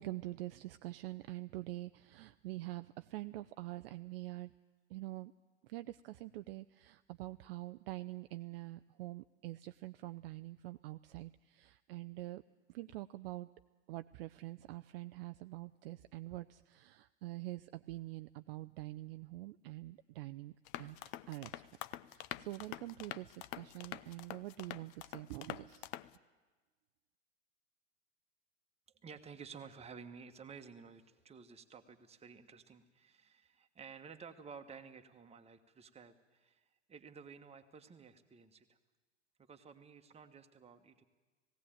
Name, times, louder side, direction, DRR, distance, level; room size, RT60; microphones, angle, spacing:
voice 1, 0.0-4.5 4.9-5.3 5.6-12.4 12.7-13.5 13.9-21.0 21.3-21.7 22.1-25.9, right 17 dB, 50° right, 11 dB, 0.5 m, -45 dB
sound 1, 20.7-26.2, left 14 dB, 40° left, 0.6 m, -46 dB
voice 2, 29.0-38.8 39.4-41.0, right 6 dB, 15° right, 6 dB, 1.4 m, -53 dB
18.5 x 16.5 x 8.9 m, 1.3 s
figure-of-eight pair, 90°, 38 cm